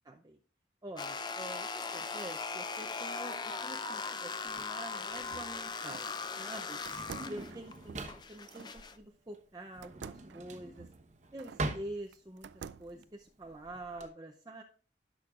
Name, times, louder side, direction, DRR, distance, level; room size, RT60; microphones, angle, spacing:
voice 1, 0.0-0.4 0.8-6.1 6.4-6.8 7.2-10.9 11.3-12.5 12.8-14.6, right 1 dB, 20° right, 1 dB, 0.6 m, -46 dB
sound 1, 1.0-9.0, left 4 dB, 25° left, 0.5 m, -39 dB
Drawer open or close, 4.5-14.1, right 2 dB, 40° right, 1.0 m, -43 dB
sound 2, 4.9-6.1 6.8-8.7 9.8-11.7 12.1-13.0, right 6 dB, 85° right, 0.4 m, -50 dB
17.5 x 6.3 x 2.4 m, 0.40 s
head